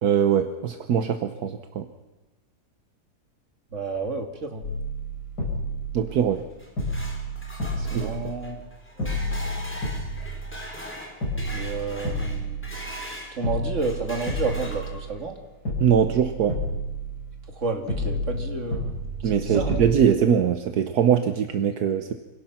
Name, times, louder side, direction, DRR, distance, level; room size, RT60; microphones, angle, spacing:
voice 1, 0.0-1.8 5.9-6.4 7.9-8.1 15.8-16.6 19.2-22.1, right 8 dB, 75° right, 8 dB, 1.5 m, -22 dB
voice 2, 3.7-4.6 7.8-8.7 9.0-9.2 11.5-12.6 13.4-15.4 17.5-18.9 19.4-19.8, right 3 dB, 50° right, 4 dB, 2.5 m, -31 dB
sound 1, 4.6-6.5 6.8-8.7 9.0-10.8 11.2-13.1 13.4-15.3 15.6-17.6 17.9-19.8, equal, 85° left, 6.5 m, -31 dB
sound 2, 6.4-13.4 13.8-15.2, equal, 5° left, 3.5 m, -40 dB
26.0 x 17.5 x 5.9 m, 1.2 s
omnidirectional pair, 1.7 m